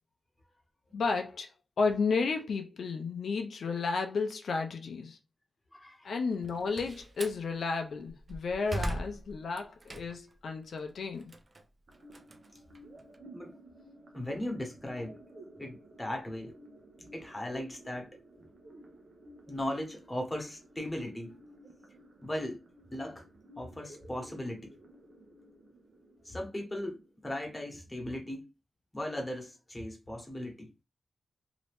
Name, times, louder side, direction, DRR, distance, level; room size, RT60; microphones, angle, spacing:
voice 1, 0.9-1.5 1.8-5.2 6.0-11.3, left 4 dB, 85° left, 0.4 m, -32 dB
voice 2, 5.7-6.1 13.3-13.6 14.1-15.2 15.6-16.5 17.0-18.1 19.5-21.4 22.2-22.6 22.9-23.2 23.6-24.7 26.2-27.0 27.2-28.4 28.9-30.7, left 1 dB, 15° left, 1.2 m, -37 dB
Slam, 6.3-7.4 8.0-10.4 10.8-13.2, right 1 dB, 40° right, 0.5 m, -40 dB
sound 1, 11.9-27.9, right 1 dB, 70° right, 0.8 m, -54 dB
2.8 x 2.6 x 3.4 m
cardioid pair, 75°, 0 cm